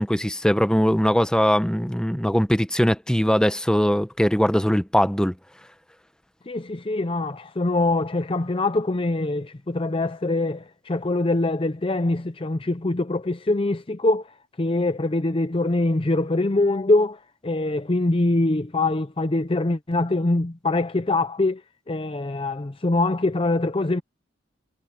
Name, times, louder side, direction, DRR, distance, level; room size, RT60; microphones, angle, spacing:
voice 1, 0.0-5.3, equal, 5° left, 0.9 m, -21 dB
voice 2, 6.5-14.3 14.6-21.6 21.9-24.0, left 2 dB, 25° left, 0.5 m, -23 dB
head